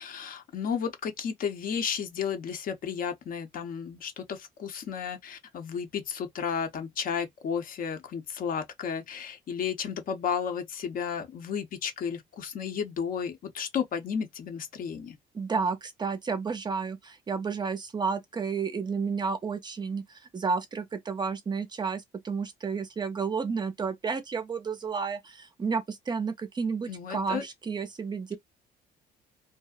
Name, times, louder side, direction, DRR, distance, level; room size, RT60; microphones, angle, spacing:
voice 1, 0.0-15.2 26.9-27.4, left 7 dB, 55° left, 0.7 m, -33 dB
voice 2, 15.3-28.4, right 5 dB, 25° right, 0.4 m, -31 dB
2.6 x 2.0 x 2.3 m
cardioid pair, 110°, 17 cm